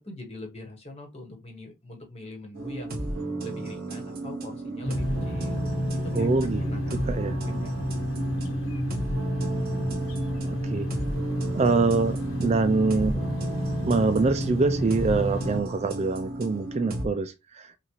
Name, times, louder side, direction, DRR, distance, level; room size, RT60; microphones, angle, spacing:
voice 1, 0.0-3.0 3.4-6.3 6.6-7.1 7.4-7.7, left 2 dB, 30° left, 1.3 m, -43 dB
sound 1, 2.5-17.1, right 1 dB, 45° right, 1.3 m, -34 dB
sound 2, 4.8-15.6, equal, 70° left, 1.2 m, -30 dB
voice 2, 6.1-7.4 10.4-10.9 11.5-13.2 13.8-17.7, right 3 dB, 30° right, 0.3 m, -25 dB
5.8 x 2.4 x 3.1 m
head